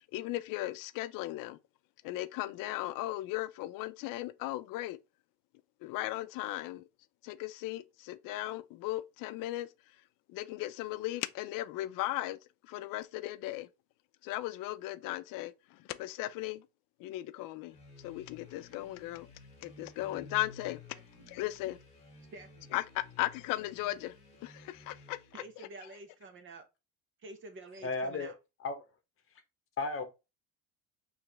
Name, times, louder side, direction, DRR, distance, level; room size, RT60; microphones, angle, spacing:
voice 1, 0.0-1.6 2.0-5.0 5.8-6.8 7.2-9.7 10.3-12.4 12.7-13.7 14.2-16.6 17.0-17.7 18.0-19.3 19.6-20.8 21.3-21.8 22.7-24.1 24.4-25.4, left 16 dB, 60° left, 0.6 m, -37 dB
sound 1, 17.7-25.5, left 3 dB, 15° left, 1.9 m, -54 dB
voice 2, 20.9-21.3 22.3-22.7 25.3-26.6 27.2-28.3, right 2 dB, 30° right, 0.9 m, -49 dB
voice 3, 27.8-28.3 28.6-28.8 29.8-30.0, left 3 dB, 35° left, 1.1 m, -34 dB
4.5 x 3.3 x 3.3 m
cardioid pair, 135°, 38 cm